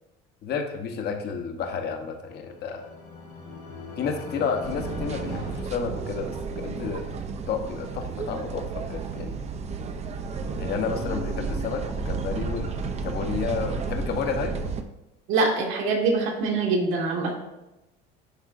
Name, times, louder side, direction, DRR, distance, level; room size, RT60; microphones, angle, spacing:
voice 1, 0.4-2.9 4.0-7.1 7.5-9.4 10.6-14.5, left 5 dB, 50° left, 4 dB, 1.0 m, -31 dB
sound 1, 2.0-6.6, left 3 dB, 85° left, 2.2 m, -41 dB
sound 2, 4.6-14.8, right 4 dB, 30° right, 0.5 m, -32 dB
voice 2, 15.3-17.3, right 3 dB, 70° right, 0 dB, 1.6 m, -24 dB
9.9 x 3.6 x 2.6 m, 0.97 s
supercardioid pair, 115°, 21 cm